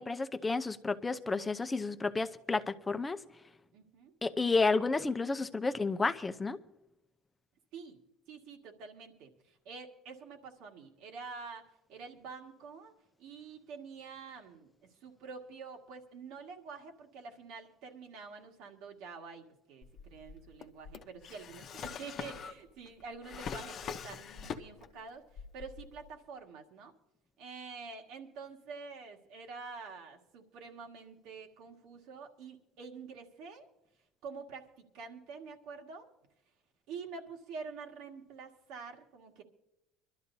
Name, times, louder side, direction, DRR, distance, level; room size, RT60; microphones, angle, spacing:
voice 1, 0.0-3.2 4.2-6.6, left 3 dB, 15° left, 0.6 m, -31 dB
voice 2, 3.7-4.1 7.7-8.0 8.3-12.9 13.2-26.9 27.4-33.7 34.2-36.1 36.9-39.4, right 5 dB, 65° right, 1.8 m, -47 dB
Drawer open or close, 19.8-25.0 25.3-26.1, left 7 dB, 40° left, 0.8 m, -43 dB
24.5 x 12.5 x 2.7 m
cardioid pair, 140°, 0 cm